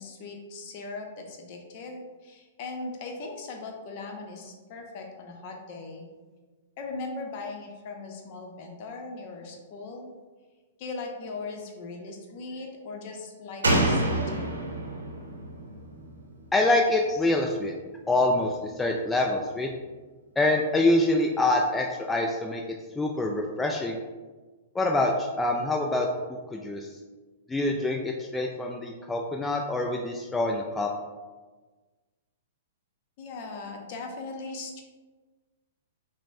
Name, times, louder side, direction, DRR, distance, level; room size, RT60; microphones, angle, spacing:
voice 1, 0.0-6.1 6.8-10.1 10.8-14.6 33.2-34.8, left 3 dB, 45° left, 2 dB, 0.7 m, -39 dB
Slam, 13.6-17.1 17.4-17.5, right 1 dB, 80° right, 0.7 m, -28 dB
voice 2, 16.5-17.7 18.1-19.7 20.4-22.6 23.0-24.0 24.7-26.9 27.5-30.9, left 2 dB, 10° left, 0 dB, 0.3 m, -25 dB
5.9 x 2.1 x 2.7 m, 1.3 s
figure-of-eight pair, 110°, 0 cm